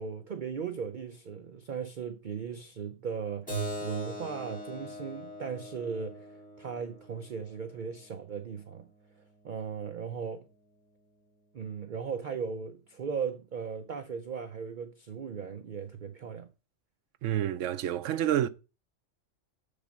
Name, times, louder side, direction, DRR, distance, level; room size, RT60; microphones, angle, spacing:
voice 1, 0.0-8.9 9.4-10.5 11.5-16.5, right 6 dB, 50° right, 0.7 m, -37 dB
Keyboard (musical), 3.5-8.6, right 1 dB, 5° left, 3.2 m, -41 dB
voice 2, 17.2-18.5, right 11 dB, 75° right, 0.9 m, -28 dB
7.2 x 5.1 x 5.1 m
omnidirectional pair, 1.3 m